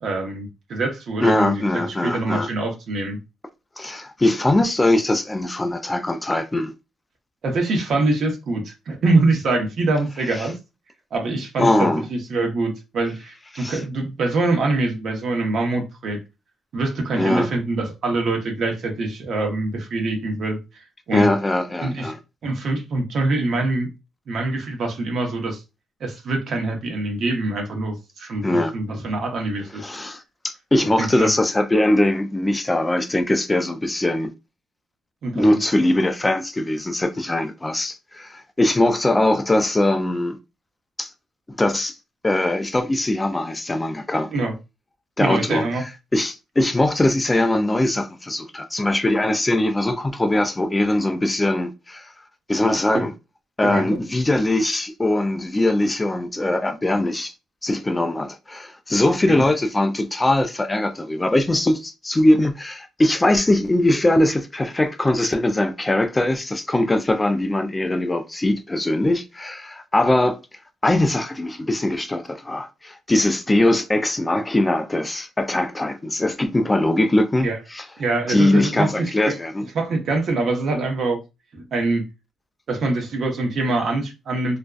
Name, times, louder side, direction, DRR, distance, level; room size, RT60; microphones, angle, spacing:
voice 1, 0.0-3.2 7.4-10.5 11.1-16.2 16.7-21.3 21.8-22.1 22.4-23.9 24.3-25.6 26.0-29.9 31.0-31.3 35.2-35.4 44.3-44.5 45.2-45.8 52.9-53.1 53.6-54.0 59.3-59.4 77.4-77.6 78.0-79.3 79.7-81.2 81.5-82.0 82.7-84.6, right 2 dB, 60° right, 0.8 m, -24 dB
voice 2, 1.2-2.5 3.8-6.7 10.4-10.5 11.6-12.0 13.5-13.8 17.2-17.5 21.1-22.2 28.4-28.7 29.8-34.3 35.3-40.4 41.0-41.1 41.6-42.0 42.2-44.3 45.2-45.7 46.1-52.1 52.5-53.1 53.6-57.3 57.6-70.4 70.8-77.9 78.3-79.6, left 1 dB, 15° left, 0.3 m, -21 dB
2.5 x 2.2 x 2.2 m
cardioid pair, 90°, 0 cm